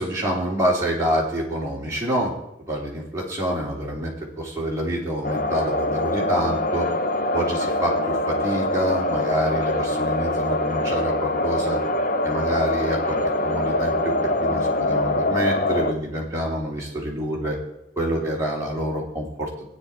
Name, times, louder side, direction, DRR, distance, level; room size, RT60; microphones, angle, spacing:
voice 1, 0.0-2.4 2.7-6.9 7.3-11.8 12.2-13.2 13.4-17.6 18.0-19.7, equal, 15° right, -5 dB, 3.0 m, -27 dB
sound 1, 5.2-15.9, left 1 dB, 45° left, 0.9 m, -24 dB
15.0 x 9.7 x 4.4 m, 0.90 s
head